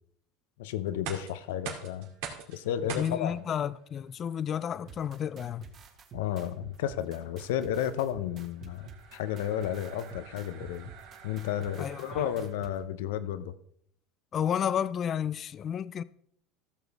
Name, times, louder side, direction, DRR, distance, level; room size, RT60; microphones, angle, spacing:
voice 1, 0.6-2.1 2.5-3.4 6.1-10.9 11.2-13.5, left 10 dB, 90° left, 0.7 m, -32 dB
sound 1, 0.9-12.8, right 7 dB, 75° right, 2.3 m, -47 dB
voice 2, 3.0-5.7 11.8-12.3 14.3-16.0, left 9 dB, 35° left, 0.4 m, -31 dB
sound 2, 4.9-12.7, right 5 dB, 35° right, 1.6 m, -48 dB
15.0 x 7.1 x 3.5 m
supercardioid pair, 135°, 0 cm